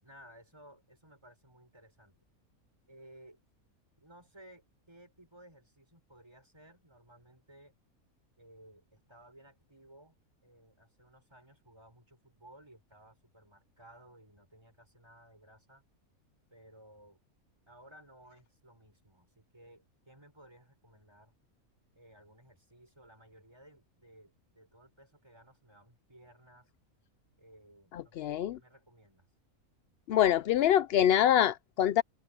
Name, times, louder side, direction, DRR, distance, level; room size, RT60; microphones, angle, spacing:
voice 1, 0.0-2.2 2.9-3.4 4.0-7.7 8.4-10.2 10.4-15.8 16.5-17.2 17.7-21.3 21.9-26.7 27.4-29.3, right 1 dB, 15° right, 6.1 m, -58 dB
voice 2, 27.9-28.6 30.1-32.0, left 11 dB, 70° left, 0.5 m, -25 dB
omnidirectional pair, 1.5 m